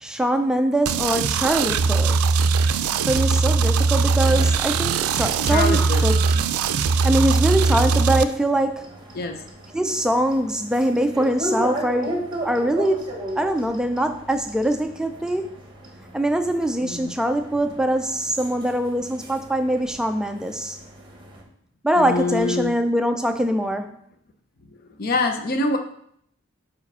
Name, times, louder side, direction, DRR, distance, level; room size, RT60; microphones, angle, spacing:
voice 1, 0.0-2.4 3.1-6.2 7.0-9.0 9.7-15.5 16.1-20.8 21.8-24.0, right 1 dB, 5° right, 6 dB, 0.3 m, -23 dB
sound 1, 0.9-8.2, right 4 dB, 90° right, 0.4 m, -20 dB
sound 2, 3.9-21.4, right 1 dB, 20° right, 1.1 m, -36 dB
voice 2, 5.5-6.0 9.1-9.4 16.8-17.1 22.0-22.8 25.0-25.8, left 3 dB, 45° left, 6 dB, 0.6 m, -25 dB
5.0 x 4.9 x 5.4 m, 0.69 s
head